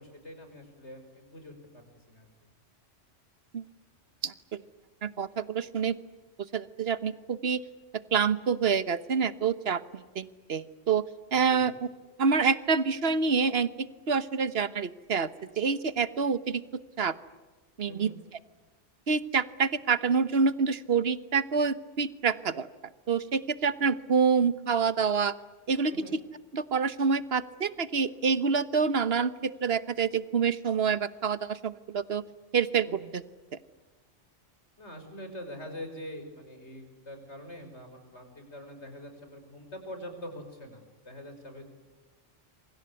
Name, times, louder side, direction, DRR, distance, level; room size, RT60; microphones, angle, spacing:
voice 1, 0.0-2.3 11.3-11.7 17.8-18.2 25.9-26.2 32.8-33.0 34.8-41.6, equal, 65° left, 6 dB, 6.0 m, -44 dB
voice 2, 4.2-4.6 5.0-6.0 6.5-7.6 8.1-9.8 10.1-11.0 11.3-11.7 12.2-15.3 15.6-16.6 17.0-17.1 17.8-18.1 19.1-22.7 23.1-25.3 25.7-25.9 26.5-32.2 32.5-32.9 33.1-33.2, right 5 dB, 55° right, 14 dB, 1.4 m, -27 dB
27.5 x 25.0 x 8.2 m, 1.3 s
omnidirectional pair, 1.2 m